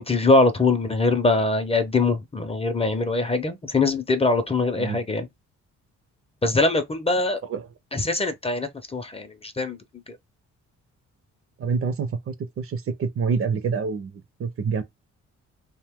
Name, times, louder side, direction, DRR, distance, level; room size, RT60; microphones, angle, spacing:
voice 1, 0.0-5.3 6.4-7.4 7.9-9.8 10.1-10.2, left 3 dB, 20° left, 0.5 m, -22 dB
voice 2, 11.6-14.8, right 5 dB, 50° right, 0.6 m, -27 dB
2.7 x 2.2 x 3.5 m
cardioid pair, 80°, 30 cm